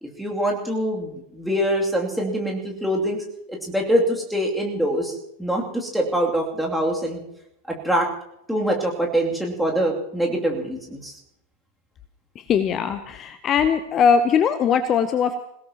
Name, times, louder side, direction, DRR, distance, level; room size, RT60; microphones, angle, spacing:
voice 1, 0.0-7.2 7.7-8.1 8.5-11.2, equal, ahead, -2 dB, 2.8 m, -24 dB
voice 2, 12.4-15.4, left 7 dB, 30° left, 11 dB, 0.8 m, -20 dB
26.5 x 17.5 x 3.0 m, 0.82 s
figure-of-eight pair, 90°, 0 cm